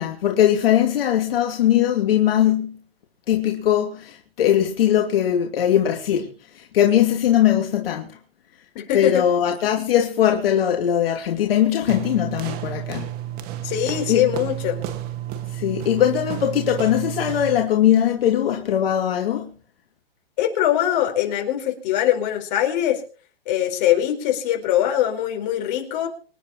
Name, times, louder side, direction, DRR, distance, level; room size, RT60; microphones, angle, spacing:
voice 1, 0.0-2.8 3.3-8.2 8.9-13.1 14.1-14.3 15.5-19.5, left 10 dB, 65° left, 2.6 m, -20 dB
voice 2, 8.7-9.2 13.6-14.8 20.4-23.0 23.5-26.1, left 11 dB, 45° left, 4.6 m, -22 dB
sound 1, 11.9-17.7, right 12 dB, 30° right, 1.9 m, -31 dB
26.5 x 10.5 x 3.1 m
hypercardioid pair, 150°, 31 cm